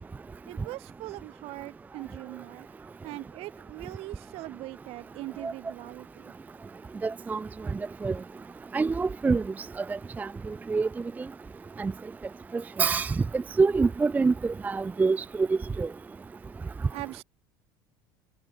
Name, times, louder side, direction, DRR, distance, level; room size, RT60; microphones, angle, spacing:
voice 1, 0.5-2.7 3.0-6.3 16.9-17.2, right 19 dB, 65° right, 3.7 m, -41 dB
voice 2, 7.0-7.4 8.0-8.1 8.7-9.4 9.8-10.3 10.7-10.9 11.8-11.9 12.5-15.9, right 4 dB, 15° right, 0.4 m, -26 dB
supercardioid pair, 105°, 11 cm